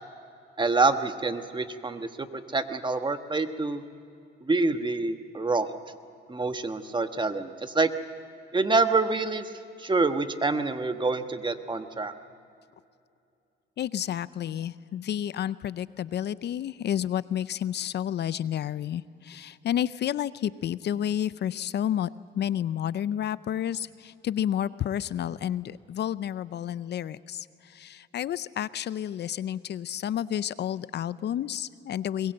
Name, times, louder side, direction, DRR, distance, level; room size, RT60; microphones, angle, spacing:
voice 1, 0.6-3.8 4.4-5.7 6.3-7.9 8.5-9.5 9.8-12.1, right 3 dB, 25° right, 8 dB, 1.3 m, -26 dB
voice 2, 13.8-22.1 22.3-32.3, left 10 dB, 60° left, 17 dB, 0.6 m, -30 dB
22.0 x 21.0 x 7.8 m, 2.5 s
cardioid pair, 90°, 20 cm